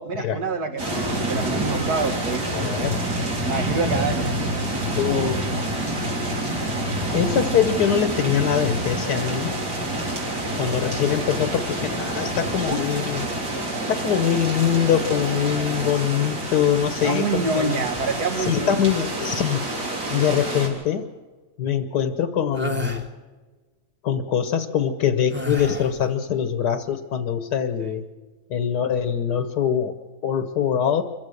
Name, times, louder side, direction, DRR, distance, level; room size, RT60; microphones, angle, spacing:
voice 1, 0.0-2.6 3.4-4.4 17.0-18.8 27.8-27.9, right 3 dB, 70° right, 6 dB, 2.3 m, -26 dB
sound 1, 0.8-20.7, right 1 dB, 85° right, 4.3 m, -27 dB
voice 2, 2.5-3.0 5.0-5.5 7.1-9.6 10.6-13.3 13.9-17.8 18.4-19.6 20.1-21.1 21.6-23.0 24.0-28.0 28.5-30.0 30.2-31.0, left 8 dB, 80° left, 10 dB, 1.6 m, -23 dB
sound 2, 22.5-23.1 25.3-26.0, left 2 dB, 5° right, 1.4 m, -29 dB
25.5 x 15.5 x 6.5 m, 1.3 s
omnidirectional pair, 1.8 m